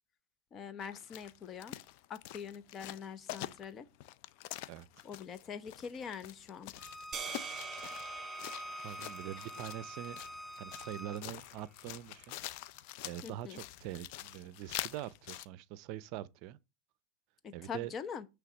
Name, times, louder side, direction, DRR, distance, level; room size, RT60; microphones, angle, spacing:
voice 1, 0.5-1.8 2.1-3.9 5.0-6.7 13.2-13.6 17.4-18.3, left 7 dB, 35° left, 0.9 m, -44 dB
sound 1, 0.8-15.5, left 15 dB, 65° left, 0.5 m, -46 dB
Bowed string instrument, 6.8-11.2, equal, 5° left, 0.4 m, -46 dB
sound 2, 7.1-11.5, right 5 dB, 30° right, 2.5 m, -46 dB
voice 2, 8.8-10.2 10.6-12.4 13.0-16.6 17.5-17.9, right 13 dB, 60° right, 0.5 m, -43 dB
9.0 x 3.5 x 6.2 m
supercardioid pair, 110°, 0 cm